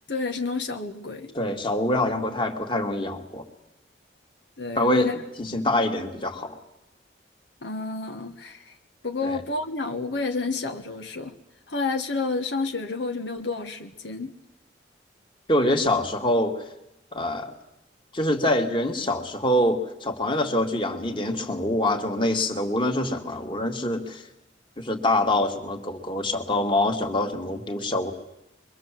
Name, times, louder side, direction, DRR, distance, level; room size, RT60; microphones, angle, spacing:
voice 1, 0.1-1.4 4.6-5.2 5.4-5.8 7.6-8.7 9.0-11.4 11.7-14.3, left 3 dB, 80° left, 4 dB, 1.6 m, -30 dB
voice 2, 1.3-3.4 4.8-5.1 5.4-6.6 9.2-9.4 15.5-16.6 17.1-17.5 18.1-24.2 24.8-28.1, left 1 dB, 30° left, 3 dB, 2.3 m, -25 dB
24.5 x 23.0 x 7.7 m, 0.89 s
head